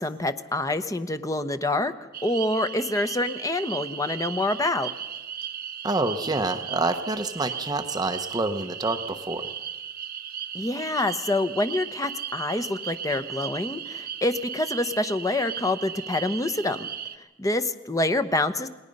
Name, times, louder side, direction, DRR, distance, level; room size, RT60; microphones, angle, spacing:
voice 1, 0.0-1.9 2.2-4.9 10.5-16.9 17.4-18.7, left 2 dB, 15° left, 10 dB, 0.9 m, -26 dB
sound 1, 2.1-17.2, right 8 dB, 50° right, 1.0 m, -36 dB
voice 2, 5.8-9.5, right 2 dB, 20° right, 6 dB, 1.0 m, -27 dB
29.0 x 19.5 x 5.4 m, 1.1 s
head